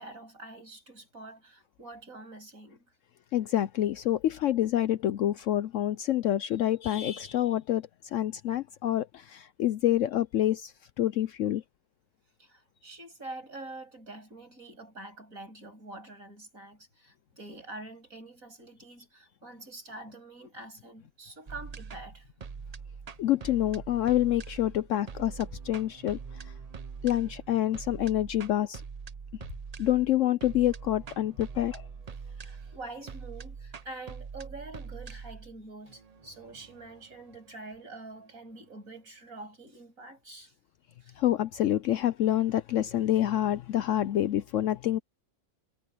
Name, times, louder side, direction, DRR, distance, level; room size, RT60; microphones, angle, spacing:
voice 1, 0.0-2.8 12.4-22.3 32.2-40.5 41.0-41.2, right 2 dB, 60° right, 8.3 m, -46 dB
voice 2, 3.3-11.6 23.2-26.2 27.0-28.8 29.8-31.9 41.2-45.0, left 12 dB, 70° left, 0.8 m, -27 dB
sound 1, 21.5-38.6, right 5 dB, 45° right, 0.5 m, -44 dB
omnidirectional pair, 1.6 m